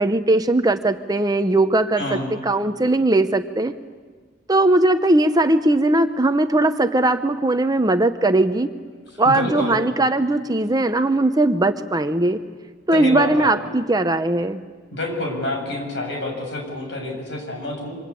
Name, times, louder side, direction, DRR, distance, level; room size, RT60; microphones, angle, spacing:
voice 1, 0.0-3.7 4.5-8.7 9.2-12.4 12.9-14.6, right 2 dB, 20° right, 8 dB, 0.8 m, -19 dB
voice 2, 2.0-2.3 9.2-9.8 12.9-13.5 14.9-18.0, left 1 dB, 65° left, 2 dB, 7.6 m, -27 dB
27.0 x 25.5 x 8.6 m, 1.5 s
head